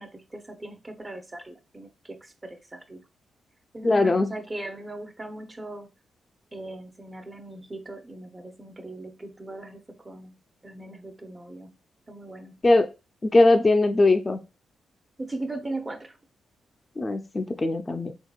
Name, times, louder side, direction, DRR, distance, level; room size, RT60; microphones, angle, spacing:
voice 1, 0.0-3.0 3.7-5.9 6.5-10.4 10.6-11.7 12.1-12.6 15.2-16.2, right 2 dB, 25° right, 0.6 m, -39 dB
voice 2, 3.8-4.3 12.6-12.9 13.2-14.4 17.0-18.1, left 2 dB, 30° left, 0.4 m, -20 dB
3.6 x 3.3 x 2.3 m
cardioid pair, 80°, 0 cm